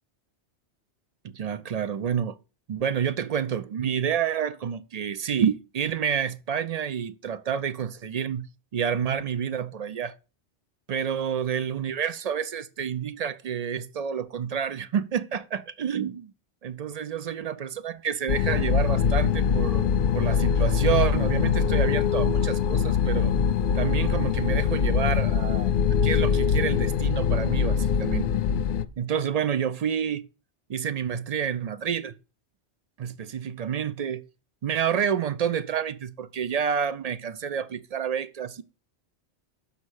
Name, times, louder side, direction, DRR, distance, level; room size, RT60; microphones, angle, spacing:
voice 1, 1.2-2.4 2.7-8.5 8.7-10.1 10.9-16.3 16.6-23.4 23.7-25.7 26.0-28.3 29.0-30.3 30.7-32.1 33.0-34.2 34.6-38.6, right 8 dB, 50° right, 0.4 m, -29 dB
sound 1, 18.3-28.8, left 7 dB, 60° left, 0.6 m, -23 dB
6.4 x 5.6 x 6.3 m
omnidirectional pair, 1.1 m